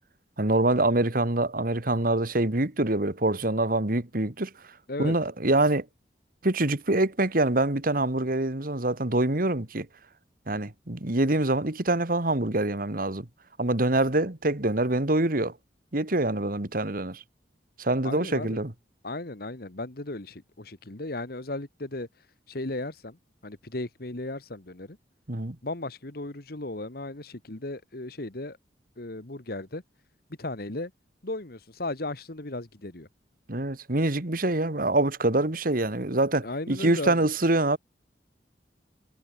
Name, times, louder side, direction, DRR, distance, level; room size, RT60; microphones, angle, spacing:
voice 1, 0.4-4.5 5.0-5.9 6.4-9.9 10.5-13.3 13.6-15.5 15.9-17.2 17.8-18.7 25.3-25.6 33.5-37.8, right 2 dB, 50° right, 1.9 m, -25 dB
voice 2, 18.0-18.6 19.0-22.1 22.5-25.0 25.6-28.6 29.0-29.8 30.4-30.9 31.2-33.1 36.4-37.3, left 2 dB, 55° left, 1.7 m, -36 dB
head